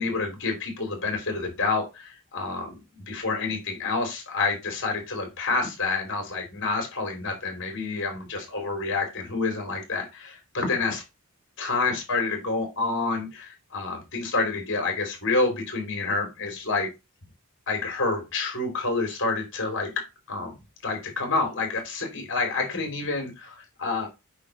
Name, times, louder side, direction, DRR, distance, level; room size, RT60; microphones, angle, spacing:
voice 1, 0.0-11.0 11.6-16.9 17.7-19.9 20.3-24.1, left 3 dB, 55° left, 3 dB, 3.5 m, -28 dB
8.5 x 3.3 x 6.4 m, 0.24 s
head